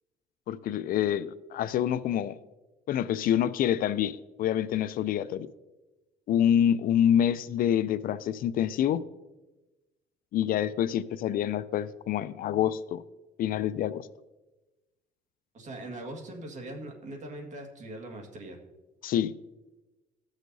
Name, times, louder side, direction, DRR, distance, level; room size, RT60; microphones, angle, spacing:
voice 1, 0.5-2.4 2.9-5.5 6.3-9.0 10.3-13.0 13.4-14.1 19.0-19.3, left 10 dB, 60° left, 15 dB, 0.4 m, -27 dB
voice 2, 15.5-18.6, right 1 dB, 45° right, 3 dB, 1.8 m, -41 dB
16.0 x 6.5 x 2.7 m, 1.1 s
cardioid pair, 110°, 17 cm